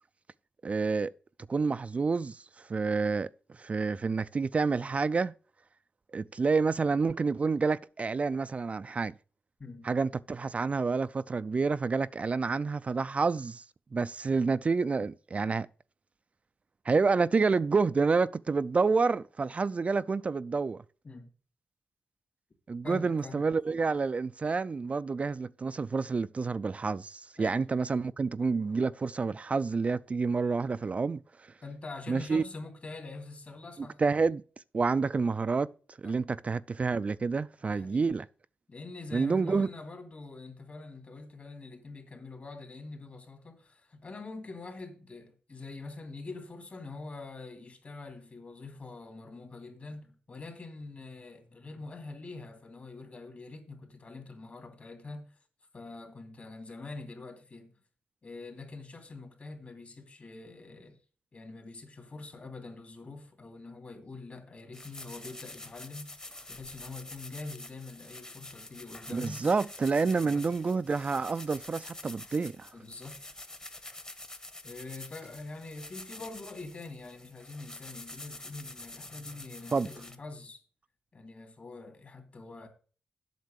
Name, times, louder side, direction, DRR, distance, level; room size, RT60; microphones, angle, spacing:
voice 1, 0.6-1.1 1.5-5.3 6.1-9.1 9.8-13.6 13.9-15.7 16.9-20.8 22.7-31.5 32.1-32.4 33.8-34.4 34.7-38.3 39.1-39.7 69.1-72.7 79.7-79.9, right 4 dB, 40° right, 0.3 m, -29 dB
voice 2, 22.8-23.4 27.4-27.6 31.6-34.0 36.0-36.2 37.7-38.1 38.7-55.2 55.7-57.7 58.2-61.0 61.3-66.1 66.5-69.4 70.0-70.4 72.7-73.2 74.6-80.6 81.1-82.7, left 3 dB, 45° left, 2.7 m, -44 dB
sound 1, 64.7-80.1, left 2 dB, 25° left, 1.2 m, -47 dB
8.1 x 6.5 x 6.4 m
cardioid pair, 75°, 3 cm